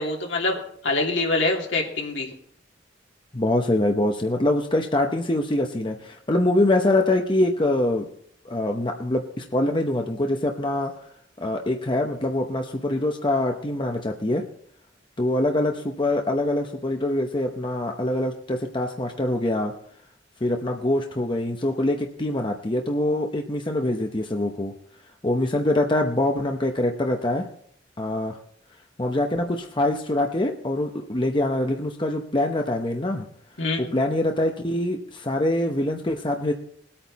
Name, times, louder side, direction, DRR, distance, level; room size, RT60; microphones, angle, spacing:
voice 1, 0.0-2.3 33.6-33.8, left 2 dB, 70° left, 0 dB, 2.7 m, -25 dB
voice 2, 3.3-8.1 8.4-10.9 11.4-14.4 15.2-19.8 20.4-24.7 25.2-27.5 28.0-28.4 29.0-33.2 33.8-36.5, left 1 dB, 25° left, 3 dB, 0.8 m, -24 dB
20.0 x 8.7 x 4.1 m, 0.63 s
head